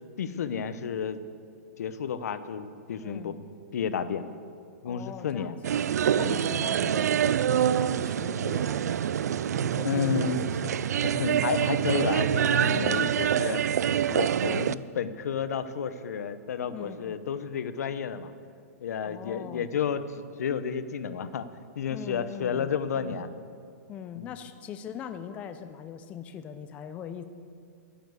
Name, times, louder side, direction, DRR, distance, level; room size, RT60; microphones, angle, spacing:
voice 1, 0.2-1.2 1.8-3.3 3.7-4.2 4.8-5.6 6.2-6.4 9.8-10.5 11.0-13.7 14.1-18.3 18.8-21.5 21.8-23.3 24.2-24.3, left 7 dB, 75° left, 12 dB, 0.9 m, -31 dB
voice 2, 3.0-3.4 4.8-5.6 6.1-10.8 12.7-13.1 16.7-17.2 19.0-19.7 21.9-22.7 23.0-23.2 23.9-27.3, left 8 dB, 15° left, 9 dB, 0.4 m, -41 dB
sound 1, 5.6-14.7, right 9 dB, 90° right, 0.4 m, -26 dB
12.0 x 10.0 x 7.9 m, 2.3 s
hypercardioid pair, 165°, 9 cm